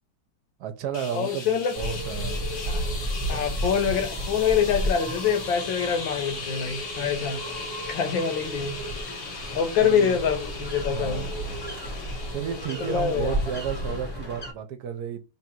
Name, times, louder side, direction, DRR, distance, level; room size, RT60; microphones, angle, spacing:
voice 1, 0.6-2.5 9.8-10.2 10.9-11.4 12.3-15.2, right 8 dB, 65° right, 1.1 m, -33 dB
sound 1, 0.9-14.3, left 4 dB, 55° left, 0.7 m, -39 dB
voice 2, 1.1-1.8 2.7-2.9 3.3-7.4 7.9-8.8 9.3-11.3 12.8-13.4, left 7 dB, 85° left, 1.6 m, -25 dB
sound 2, 1.7-14.5, equal, 20° left, 0.8 m, -33 dB
3.7 x 2.5 x 4.4 m
omnidirectional pair, 2.1 m